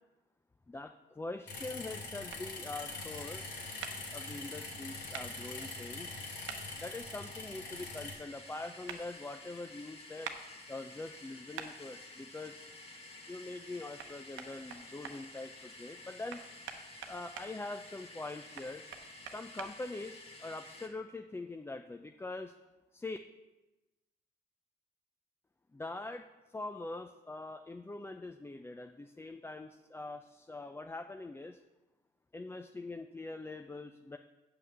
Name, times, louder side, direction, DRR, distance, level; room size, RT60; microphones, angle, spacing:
voice 1, 0.7-3.5 4.1-6.1 6.7-10.3 10.7-12.6 13.3-16.4 17.1-18.8 19.2-22.5 22.9-23.2 25.7-31.6 32.3-34.2, left 2 dB, 10° left, 6 dB, 0.4 m, -43 dB
sound 1, 1.5-8.1, left 3 dB, 70° left, 2.6 m, -44 dB
sound 2, 2.3-2.4 3.8-3.9 5.1-5.3 6.5-6.6 8.9-9.0 10.2-10.4 11.6-11.7 14.0-14.1 14.4-15.2 16.3-17.5 18.6-19.7, right 8 dB, 80° right, 0.9 m, -43 dB
sound 3, 3.1-20.9, left 2 dB, 30° left, 1.5 m, -52 dB
7.8 x 5.7 x 7.6 m, 1.1 s
cardioid pair, 90°, 20 cm